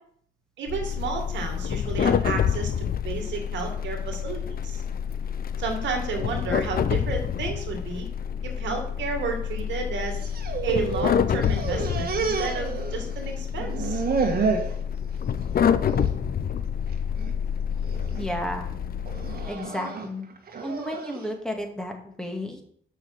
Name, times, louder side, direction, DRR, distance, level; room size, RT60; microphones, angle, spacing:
voice 1, 0.6-4.8 5.6-8.1 8.4-10.2 10.6-14.0, right 4 dB, 75° right, 3 dB, 2.0 m, -32 dB
sound 1, 0.7-19.5, left 8 dB, 50° left, 0.7 m, -28 dB
sound 2, 10.1-11.1 11.4-13.3 13.6-14.7 15.2-15.6 15.9-16.1 16.9-17.3 17.8-18.2 19.1-21.3, right 5 dB, 55° right, 1.7 m, -30 dB
voice 2, 18.2-18.7 19.5-20.3 20.6-22.6, equal, 5° left, 2 dB, 2.3 m, -32 dB
7.5 x 6.0 x 6.4 m, 0.63 s
supercardioid pair, 65°, 19 cm